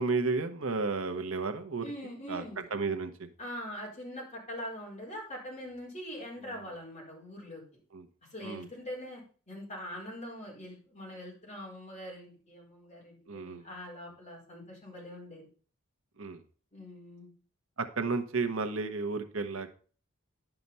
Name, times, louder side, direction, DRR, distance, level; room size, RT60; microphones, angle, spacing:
voice 1, 0.0-1.8 2.3-2.4 2.7-3.3 7.9-8.1 8.4-8.7 13.3-13.7 16.2-16.4 17.8-19.7, right 4 dB, 70° right, 7 dB, 1.0 m, -32 dB
voice 2, 1.8-2.6 3.4-7.6 8.3-9.2 9.5-15.5 16.7-17.3, equal, 30° left, -3 dB, 4.6 m, -43 dB
11.0 x 5.9 x 5.4 m, 0.41 s
head